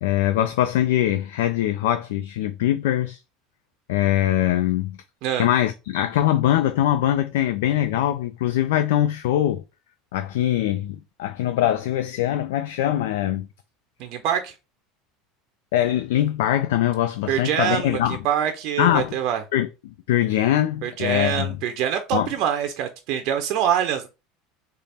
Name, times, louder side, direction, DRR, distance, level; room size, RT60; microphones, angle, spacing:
voice 1, 0.0-3.2 3.9-5.0 5.4-9.6 10.1-13.5 15.7-18.2 18.8-19.1 19.5-21.5 22.1-22.3, left 12 dB, 75° left, 0.3 m, -22 dB
voice 2, 14.0-14.5 17.3-19.4 20.8-24.1, right 9 dB, 60° right, 0.5 m, -25 dB
3.3 x 2.0 x 4.1 m
hypercardioid pair, 85°, 0 cm